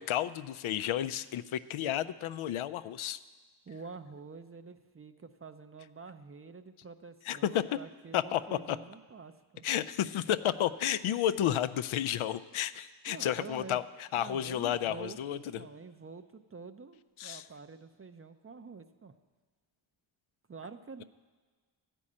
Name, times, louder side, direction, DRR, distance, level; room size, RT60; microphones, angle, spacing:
voice 1, 0.0-3.2 7.3-7.6 8.1-8.8 9.6-15.7 17.2-17.4, left 11 dB, 90° left, 12 dB, 0.5 m, -32 dB
voice 2, 3.7-9.7 13.1-13.8 14.2-19.1 20.5-21.0, right 4 dB, 30° right, 10 dB, 0.5 m, -47 dB
13.0 x 5.4 x 8.5 m, 1.4 s
wide cardioid pair, 100°, 47 cm